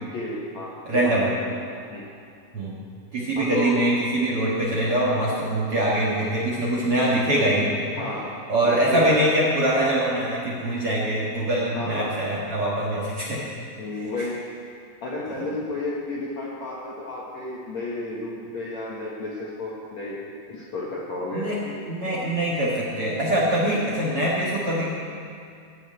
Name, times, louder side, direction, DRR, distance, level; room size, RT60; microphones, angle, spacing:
voice 1, 0.1-1.6 1.9-2.1 3.4-3.9 8.0-9.2 11.7-12.2 13.8-14.4 15.0-21.5, left 2 dB, 60° left, -5 dB, 1.9 m, -32 dB
voice 2, 0.9-1.3 2.5-2.8 3.1-7.7 8.5-13.4 13.9-14.3 21.3-21.6 21.9-24.9, right 1 dB, 50° right, -5 dB, 1.8 m, -23 dB
16.0 x 6.8 x 8.8 m, 2.3 s
omnidirectional pair, 5.0 m